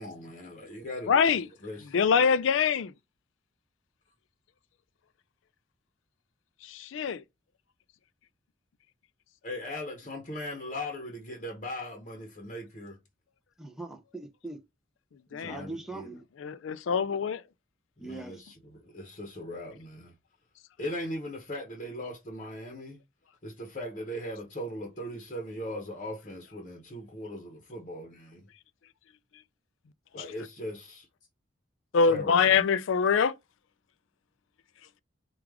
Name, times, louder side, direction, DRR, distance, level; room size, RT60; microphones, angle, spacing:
voice 1, 0.0-2.0 9.4-13.0 15.4-16.1 18.0-20.1 20.8-23.0 23.4-28.5 30.1-31.1 32.1-32.4, left 1 dB, 35° left, 0.8 m, -39 dB
voice 2, 1.1-1.5 1.8-2.9 6.6-7.2 15.3-15.7 16.4-17.4 30.1-30.2 31.9-33.4, left 6 dB, 75° left, 0.4 m, -24 dB
voice 3, 13.6-14.6 15.3-16.2 18.0-18.4, right 2 dB, ahead, 0.5 m, -41 dB
4.7 x 2.4 x 3.5 m
head